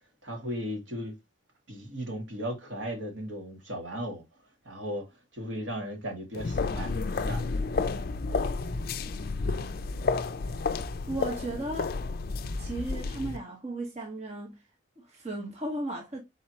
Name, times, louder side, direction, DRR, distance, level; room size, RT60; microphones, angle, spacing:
voice 1, 0.2-1.1 1.7-4.2 4.6-7.5, equal, 70° right, 1.9 m, -36 dB
sound 1, 6.3-13.4, left 4 dB, 50° left, 0.4 m, -31 dB
voice 2, 11.1-12.0 12.6-14.6 15.0-16.2, right 2 dB, 35° right, 1.0 m, -35 dB
4.3 x 3.9 x 2.8 m
head